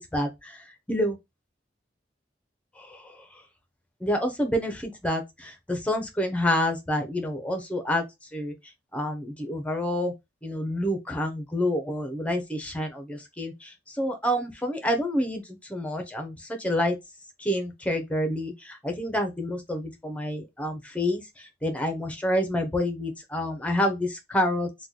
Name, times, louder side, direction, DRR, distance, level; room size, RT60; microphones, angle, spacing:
voice 1, 0.1-0.5 0.9-1.2 4.0-8.0 8.3-8.5 8.9-10.1 10.4-13.5 14.0-15.4 15.7-16.3 16.6-16.9 17.4-18.5 18.8-21.2 21.6-24.7, left 1 dB, 10° left, 0.7 m, -28 dB
3.0 x 2.3 x 3.8 m
head